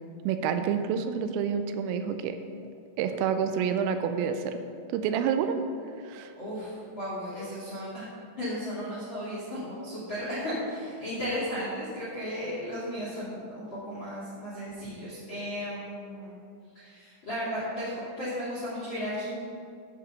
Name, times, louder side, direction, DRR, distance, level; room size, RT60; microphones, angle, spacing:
voice 1, 0.3-2.4 3.0-4.6 4.9-5.6 6.0-6.3, right 7 dB, 85° right, 8 dB, 3.2 m, -28 dB
voice 2, 6.3-8.1 8.4-16.3 16.7-19.4, equal, 45° left, -9 dB, 1.5 m, -35 dB
11.0 x 4.8 x 6.8 m, 2.3 s
omnidirectional pair, 5.8 m